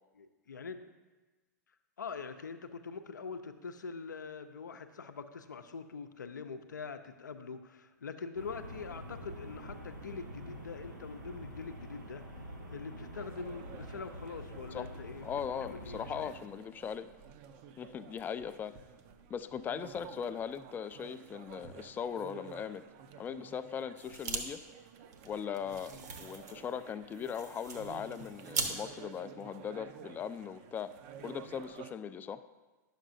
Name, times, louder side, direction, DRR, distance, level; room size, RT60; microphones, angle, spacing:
voice 1, 0.2-0.9 2.0-12.2 12.7-15.3 15.6-16.3, left 5 dB, 80° left, 9 dB, 0.6 m, -44 dB
sound 1, 8.3-16.3, equal, 90° right, 1.5 m, -46 dB
sound 2, 13.1-31.9, right 8 dB, 45° right, 0.5 m, -52 dB
voice 2, 15.2-17.1 17.8-18.8 19.3-22.8 23.2-24.6 25.2-30.9 31.2-32.4, left 7 dB, 20° left, 13 dB, 0.3 m, -39 dB
sound 3, 24.0-24.4 24.7-24.8 25.1-28.7, right 4 dB, 65° right, 1.0 m, -40 dB
10.5 x 6.6 x 2.6 m, 1.2 s
figure-of-eight pair, 100°, 10 cm